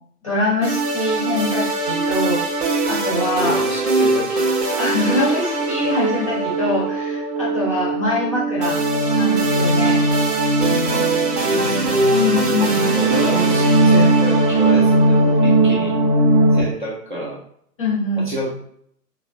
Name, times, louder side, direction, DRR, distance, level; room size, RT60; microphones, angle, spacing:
voice 1, 0.2-2.4 2.8-3.6 4.8-8.8 9.1-10.0 12.1-12.9 17.8-18.3, left 2 dB, 20° left, -6 dB, 0.7 m, -23 dB
sound 1, 0.6-16.6, right 2 dB, 70° right, 0.9 m, -19 dB
voice 2, 3.4-4.5 10.9-11.1 11.4-12.1 12.9-16.0 16.5-17.4 18.2-18.5, equal, 30° right, -3 dB, 0.6 m, -29 dB
3.6 x 2.2 x 2.4 m, 0.66 s
figure-of-eight pair, 130°, 48 cm